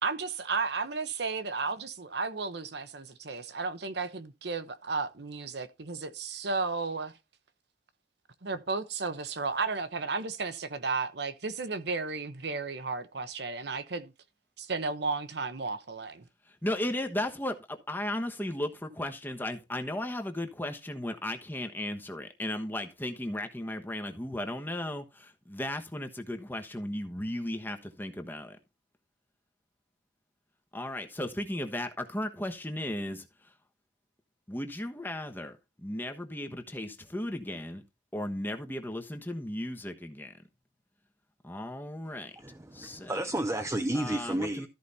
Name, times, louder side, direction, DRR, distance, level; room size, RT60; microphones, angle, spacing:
voice 1, 0.0-7.1 8.4-14.1 14.6-16.2, right 4 dB, 65° right, 1.0 m, -33 dB
voice 2, 16.5-28.6 30.7-33.3 34.5-37.8 38.1-40.3 41.4-42.3 42.7-43.2 43.9-44.7, left 1 dB, 10° left, 1.2 m, -35 dB
voice 3, 42.3-44.7, right 1 dB, 15° right, 0.7 m, -32 dB
13.5 x 5.1 x 4.2 m
head